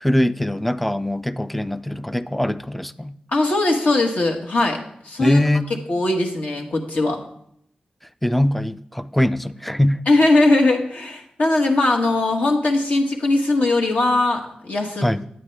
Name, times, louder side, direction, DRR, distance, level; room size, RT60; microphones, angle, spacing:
voice 1, 0.0-3.2 5.2-5.7 8.2-10.0 15.0-15.3, left 1 dB, 5° left, 14 dB, 0.3 m, -22 dB
voice 2, 3.3-5.4 5.9-7.2 10.1-15.1, left 2 dB, 65° left, 2 dB, 1.5 m, -20 dB
9.2 x 9.2 x 3.3 m, 0.69 s
wide cardioid pair, 95°, 3 cm